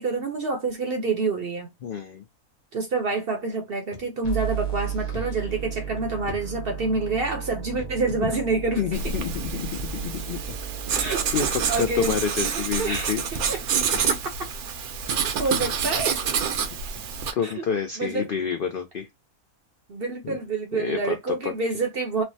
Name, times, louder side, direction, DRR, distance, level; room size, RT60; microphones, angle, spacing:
voice 1, 0.0-1.7 2.7-9.1 11.0-11.2 11.7-12.2 12.4-13.1 13.4-13.6 15.4-16.2 17.4-17.6 18.0-18.3 19.9-22.2, right 3 dB, 55° right, 0.7 m, -27 dB
voice 2, 1.8-2.2 8.2-8.3 8.8-10.4 10.9-13.2 17.3-19.1 20.2-20.4 20.7-21.2 21.4-21.5, left 7 dB, 75° left, 0.5 m, -29 dB
sound 1, 3.9-4.1 4.5-4.6 5.1-7.2 7.7-7.9 8.2-8.4 9.1-9.6 10.5-11.0 11.9-12.0 13.0-13.1 13.3-14.5 14.9-15.2 16.0-16.1 16.6-16.7 16.9-17.1 17.5-17.7, left 3 dB, 60° left, 0.9 m, -44 dB
sound 2, 4.2-12.2, right 8 dB, 35° left, 0.8 m, -34 dB
Writing, 8.9-17.3, right 6 dB, 75° right, 1.1 m, -28 dB
3.2 x 2.1 x 2.6 m
omnidirectional pair, 1.5 m